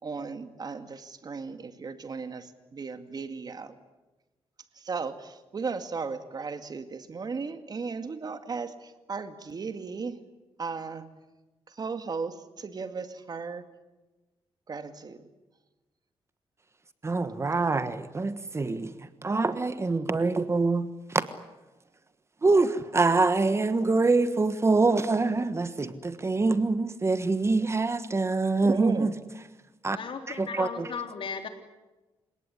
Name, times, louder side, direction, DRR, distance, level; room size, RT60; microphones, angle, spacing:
voice 1, 0.0-3.7 4.8-8.7 9.1-10.2 10.6-11.0 11.8-13.6 14.7-15.2 28.7-29.1, right 5 dB, 45° right, 2.1 m, -35 dB
voice 2, 17.0-21.3 22.4-29.1 29.8-30.0 30.3-30.9, right 3 dB, 30° right, 1.4 m, -25 dB
voice 3, 29.9-31.5, left 5 dB, 60° left, 3.6 m, -36 dB
29.0 x 18.0 x 9.8 m
cardioid pair, 105°, 10 cm